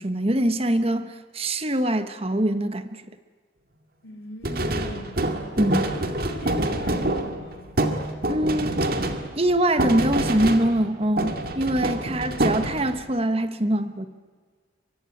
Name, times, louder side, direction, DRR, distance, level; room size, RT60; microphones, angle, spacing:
voice 1, 0.0-3.0 5.6-5.9 8.3-8.9 9.4-14.1, right 1 dB, 30° right, 10 dB, 1.3 m, -23 dB
voice 2, 4.0-5.3 5.6-7.7, left 1 dB, 85° left, 8 dB, 3.6 m, -40 dB
sound 1, 4.4-10.9 11.2-13.0, right 1 dB, 50° right, 2.2 m, -26 dB
24.0 x 23.5 x 10.0 m, 1.5 s
head